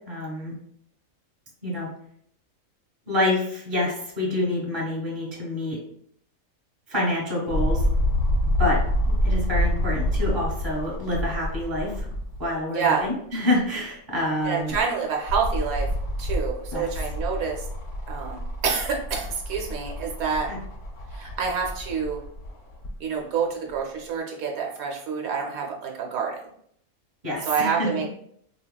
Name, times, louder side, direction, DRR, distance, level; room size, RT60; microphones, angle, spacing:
voice 1, 0.1-0.5 1.6-1.9 3.1-5.8 6.9-7.8 8.6-12.1 12.4-14.7 16.7-16.9 20.5-20.6 27.2-28.1, left 1 dB, 15° right, -3 dB, 0.9 m, -27 dB
sound 1, 7.5-12.5 13.0-13.1 14.4-23.0 23.7-23.8, equal, 65° left, 0.9 m, -27 dB
voice 2, 12.7-13.1 14.4-15.9 16.2-17.7 18.1-20.5 21.1-22.2 23.0-26.4 27.5-28.1, right 6 dB, 80° right, 0 dB, 1.0 m, -27 dB
3.8 x 2.2 x 2.2 m, 0.68 s
omnidirectional pair, 1.5 m